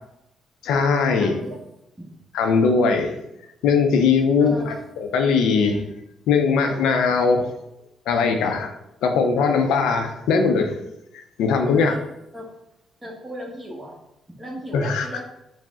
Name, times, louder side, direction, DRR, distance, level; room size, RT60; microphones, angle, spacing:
voice 1, 0.6-1.4 2.3-3.1 3.6-5.8 6.3-7.5 8.1-8.7 9.0-10.8 11.1-11.9 14.7-15.1, left 5 dB, 85° left, 5 dB, 0.5 m, -20 dB
voice 2, 1.2-1.6 2.0-2.1 4.4-4.9 11.6-12.0 12.3-12.5 13.0-14.0 14.4-15.2, equal, 15° right, -3 dB, 0.9 m, -36 dB
4.8 x 2.0 x 3.6 m, 0.86 s
cardioid pair, 90°, 0 cm